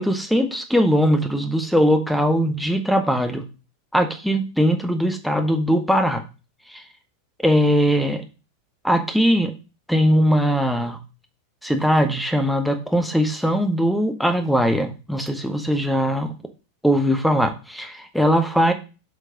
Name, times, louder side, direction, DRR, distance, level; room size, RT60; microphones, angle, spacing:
voice 1, 0.0-3.4 3.9-6.2 6.7-6.8 7.4-8.2 8.8-9.5 9.9-11.0 11.6-16.3 16.8-18.7, equal, ahead, 7 dB, 1.1 m, -20 dB
7.7 x 5.3 x 3.8 m, 0.32 s
figure-of-eight pair, 90°, 0 cm